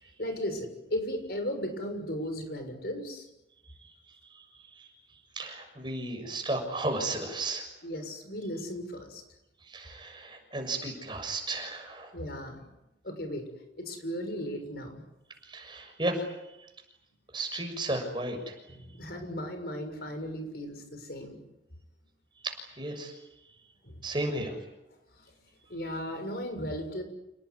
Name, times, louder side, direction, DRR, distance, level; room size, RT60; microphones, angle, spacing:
voice 1, 0.2-3.3 7.8-9.2 12.1-12.6 13.0-13.4 13.8-15.0 18.7-21.4 23.8-24.0 25.7-27.0, equal, 60° left, 6 dB, 6.7 m, -36 dB
voice 2, 4.3-4.9 5.3-7.6 9.7-12.1 15.4-16.3 17.3-18.6 22.4-23.1 24.0-24.6, right 2 dB, 25° right, 4 dB, 6.6 m, -34 dB
29.5 x 19.0 x 9.7 m, 0.92 s
head